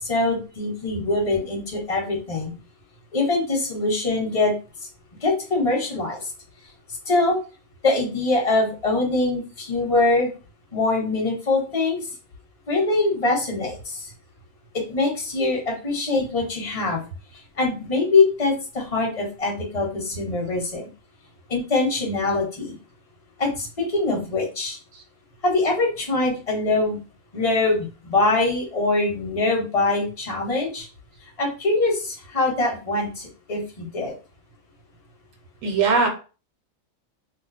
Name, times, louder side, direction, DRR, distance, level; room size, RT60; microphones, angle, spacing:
voice 1, 0.0-2.5 3.1-4.5 5.2-6.3 7.1-7.4 7.8-10.3 10.7-12.0 12.7-14.1 14.9-17.0 17.6-20.9 21.5-22.8 23.4-24.8 25.4-27.0 27.3-30.9 31.4-34.1, left 3 dB, 30° left, -1 dB, 1.0 m, -23 dB
voice 2, 35.6-36.1, right 4 dB, 75° right, 4 dB, 1.2 m, -20 dB
2.6 x 2.2 x 4.0 m, 0.33 s
omnidirectional pair, 1.4 m